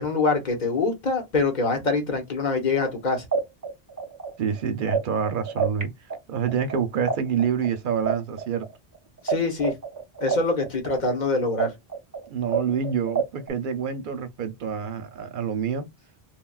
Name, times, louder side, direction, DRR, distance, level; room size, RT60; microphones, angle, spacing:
voice 1, 0.0-3.3 9.2-9.7 10.2-11.7, left 3 dB, 50° left, 0.9 m, -24 dB
sound 1, 2.9-3.0 3.3-5.8 6.1-9.3 9.6-13.5, right 6 dB, 25° right, 0.6 m, -27 dB
voice 2, 4.4-5.9 6.3-8.6 12.3-15.9, right 7 dB, 60° right, 0.6 m, -27 dB
3.3 x 2.2 x 2.3 m
omnidirectional pair, 1.0 m